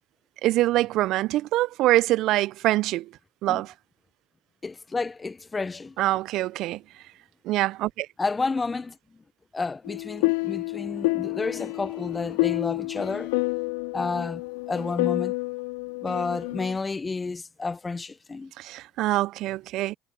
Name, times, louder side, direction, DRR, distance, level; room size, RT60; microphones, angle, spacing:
voice 1, 0.4-3.1 3.4-3.7 6.0-6.8 7.4-8.1 18.6-20.0, right 16 dB, 65° right, 0.8 m, -24 dB
voice 2, 4.6-6.0 8.2-9.0 9.5-13.3 13.9-14.4 14.7-15.3 16.0-18.5, left 3 dB, 25° left, 1.0 m, -30 dB
sound 1, 9.8-16.8, left 28 dB, 75° left, 2.9 m, -29 dB
hypercardioid pair, 55°, 0 cm